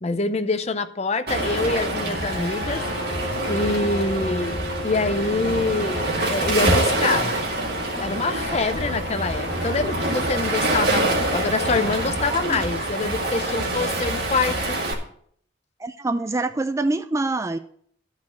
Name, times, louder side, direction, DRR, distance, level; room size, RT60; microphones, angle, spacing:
voice 1, 0.0-2.8 3.5-4.6 4.8-7.3 8.0-14.8, left 3 dB, 35° left, 0.6 m, -25 dB
Waves surf, 1.3-14.9, right 1 dB, 50° right, 2.2 m, -25 dB
sound 1, 1.4-11.6, left 2 dB, 65° left, 1.7 m, -37 dB
voice 2, 12.3-12.6 15.8-17.6, right 2 dB, 15° right, 0.4 m, -25 dB
11.5 x 4.9 x 8.3 m
head